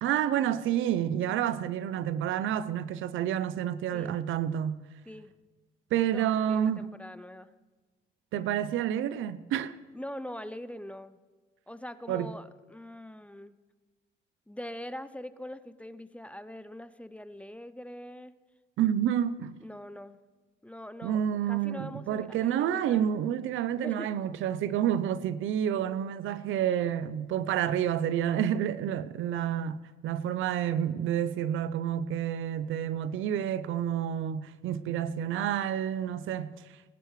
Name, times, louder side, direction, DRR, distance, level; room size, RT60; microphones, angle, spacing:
voice 1, 0.0-4.8 5.9-6.9 8.3-9.7 12.1-12.3 18.8-19.6 21.0-36.8, right 10 dB, 80° right, 0.6 m, -29 dB
voice 2, 5.9-7.5 9.9-11.2 11.7-13.6 14.5-18.3 19.6-20.2 20.6-23.1 23.8-24.1, left 1 dB, 5° left, 0.5 m, -43 dB
20.0 x 11.0 x 3.2 m
cardioid pair, 90°, 20 cm